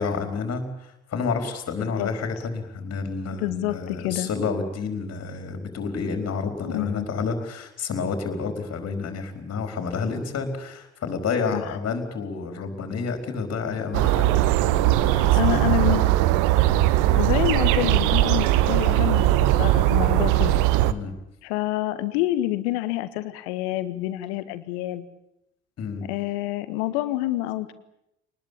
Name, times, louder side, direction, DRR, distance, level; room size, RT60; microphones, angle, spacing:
voice 1, 0.0-16.1 16.6-16.8 20.9-21.1 25.8-26.0, left 4 dB, 45° left, 6 dB, 4.5 m, -30 dB
voice 2, 1.8-2.1 3.4-4.3 6.6-7.1 11.5-11.7 15.4-16.0 17.1-20.6 21.4-25.1 26.0-27.7, left 16 dB, 65° left, 13 dB, 1.7 m, -27 dB
sound 1, 13.9-20.9, right 15 dB, 60° right, 1.2 m, -20 dB
24.0 x 20.0 x 8.9 m, 0.82 s
figure-of-eight pair, 55°, 34 cm